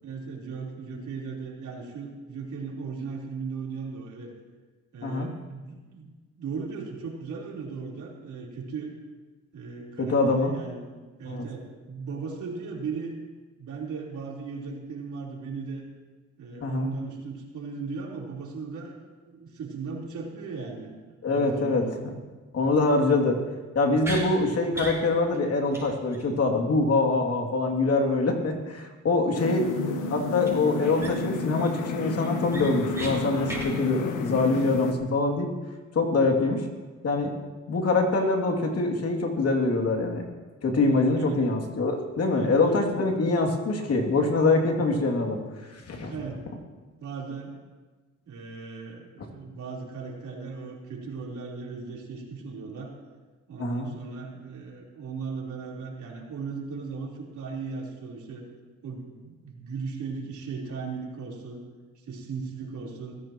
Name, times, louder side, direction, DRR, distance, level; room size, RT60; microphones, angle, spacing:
voice 1, 0.0-4.3 4.9-8.9 9.5-10.8 11.2-13.1 13.6-15.9 16.4-18.9 19.3-20.9 21.2-22.0 41.1-41.4 42.3-42.8 46.1-46.4 47.0-47.5 48.3-52.9 53.5-58.4 58.8-61.6 62.1-63.2, right 4 dB, 70° right, -2 dB, 3.9 m, -37 dB
voice 2, 10.0-10.5 11.3-11.4 16.6-16.9 21.2-22.1 22.5-23.4 23.7-29.7 30.1-35.5 35.9-36.6 37.0-37.3 37.7-40.2 40.6-45.4 45.7-46.1 53.6-53.9, left 3 dB, 55° left, 2 dB, 2.6 m, -24 dB
sound 1, 24.0-24.2 24.7-25.0 25.3-25.4 25.7-25.8 26.1-26.2 30.4-30.5 31.0-31.4 31.8-31.9 32.2-33.1 33.4-33.7, right 1 dB, 10° right, 6.5 m, -36 dB
sound 2, 29.3-34.9, left 5 dB, 85° left, 1.5 m, -31 dB
23.0 x 15.5 x 3.0 m, 1.3 s
cardioid pair, 90°, 30 cm